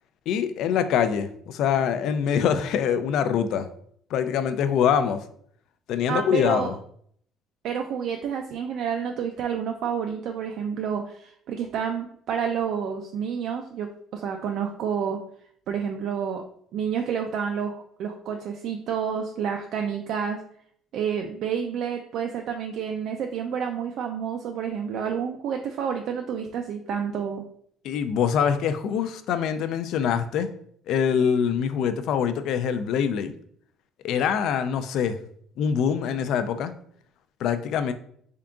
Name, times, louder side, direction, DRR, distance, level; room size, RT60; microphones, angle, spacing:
voice 1, 0.3-3.7 4.1-5.2 5.9-6.7 27.8-30.5 30.9-33.3 34.0-35.2 35.6-36.7 37.4-37.9, left 7 dB, 60° left, 10 dB, 0.3 m, -24 dB
voice 2, 6.1-6.7 7.6-15.2 15.7-16.4 16.7-20.4 20.9-27.4, right 7 dB, 60° right, 3 dB, 0.3 m, -29 dB
3.6 x 3.6 x 2.3 m, 0.63 s
cardioid pair, 145°, 0 cm